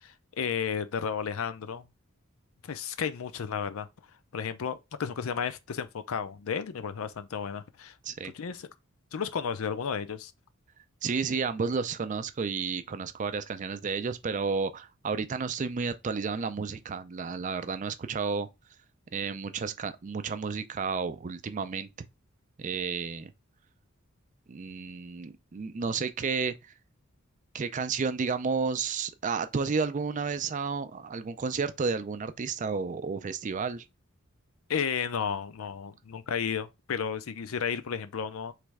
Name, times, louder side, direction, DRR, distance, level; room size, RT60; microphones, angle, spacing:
voice 1, 0.0-1.8 2.6-3.9 4.3-7.9 8.3-8.7 9.1-10.3 34.7-38.5, left 7 dB, 75° left, 0.5 m, -33 dB
voice 2, 11.0-18.5 19.1-21.9 22.6-23.3 24.5-26.5 27.5-33.8, right 5 dB, 35° right, 0.4 m, -31 dB
3.3 x 3.0 x 4.7 m
head